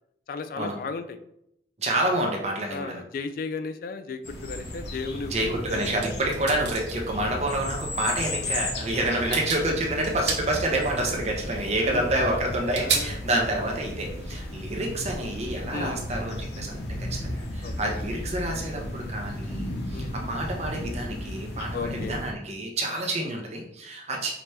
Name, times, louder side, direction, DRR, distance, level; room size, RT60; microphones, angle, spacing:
voice 1, 0.3-1.2 2.7-5.8 9.7-9.8 11.8-12.4 12.7-13.2 15.7-16.0 17.6-18.0 19.9-20.2 21.7-22.2 24.1-24.3, left 4 dB, 55° left, 10 dB, 0.3 m, -35 dB
voice 2, 1.8-3.0 5.3-24.3, right 1 dB, 40° right, 0 dB, 0.9 m, -28 dB
sound 1, 4.2-22.3, left 1 dB, 70° left, 0.9 m, -34 dB
sound 2, 6.0-7.0 8.2-8.3 8.8-9.0 9.3-9.6 10.0-10.4 11.4-11.5 12.7-13.0, right 6 dB, 85° right, 0.8 m, -29 dB
5.0 x 2.8 x 3.3 m, 0.77 s
head